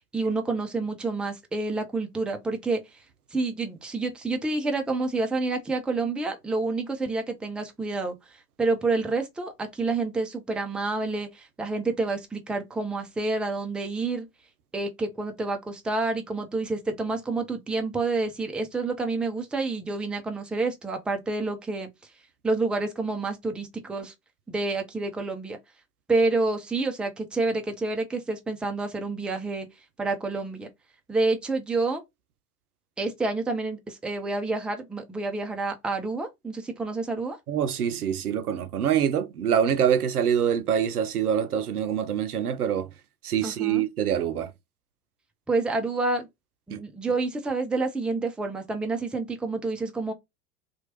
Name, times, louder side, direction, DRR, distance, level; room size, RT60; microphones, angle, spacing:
voice 1, 0.1-3.0 3.3-14.3 14.7-21.9 22.4-24.1 24.5-25.6 26.1-29.7 30.0-30.7 31.1-32.0 33.0-37.4 43.4-43.8 45.5-46.3 46.7-50.1, right 3 dB, ahead, 0.4 m, -28 dB
voice 2, 37.5-42.9 43.2-44.5 46.7-46.8, right 9 dB, 85° right, 0.5 m, -25 dB
2.9 x 2.3 x 2.9 m
figure-of-eight pair, 75°, 44 cm